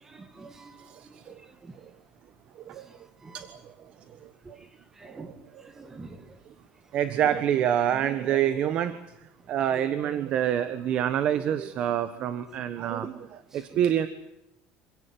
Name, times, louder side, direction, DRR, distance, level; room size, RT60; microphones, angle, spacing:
voice 1, 0.1-0.9 1.6-1.7 2.8-3.0 3.2-3.4 5.0-5.4 5.8-6.2 13.5-13.6, right 3 dB, 15° right, 2.1 m, -46 dB
voice 2, 6.9-9.0 9.5-13.2 13.5-14.1, right 10 dB, 40° right, 1.3 m, -26 dB
27.0 x 17.0 x 9.4 m
cardioid pair, 170°, 3 cm